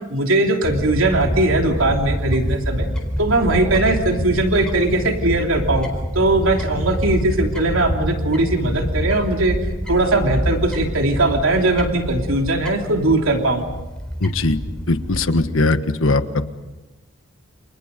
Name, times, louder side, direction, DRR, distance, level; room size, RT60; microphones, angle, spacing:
voice 1, 0.1-2.9 3.2-5.9 6.1-9.6 9.9-13.6, right 2 dB, 80° right, 3 dB, 3.1 m, -19 dB
Fowl / Bird, 0.6-15.3, equal, 5° left, 4.2 m, -26 dB
voice 2, 14.2-14.6 14.9-16.2, left 2 dB, 75° left, 10 dB, 1.5 m, -19 dB
29.0 x 29.0 x 5.3 m, 1.1 s
head